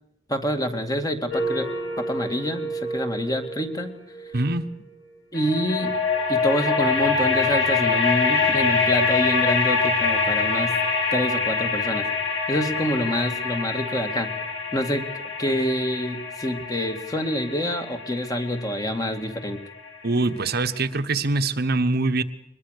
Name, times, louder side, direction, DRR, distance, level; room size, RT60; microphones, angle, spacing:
voice 1, 0.3-1.7 2.0-3.9 5.3-5.9 6.3-10.7 11.1-12.1 12.5-14.3 14.7-15.1 15.4-19.6, equal, 20° left, 5 dB, 2.3 m, -26 dB
sound 1, 1.3-4.6 5.3-20.2, left 4 dB, 80° left, 6.0 m, -25 dB
voice 2, 4.3-4.7 20.0-22.2, right 3 dB, 55° right, 8 dB, 1.2 m, -23 dB
22.5 x 21.5 x 6.7 m, 0.81 s
head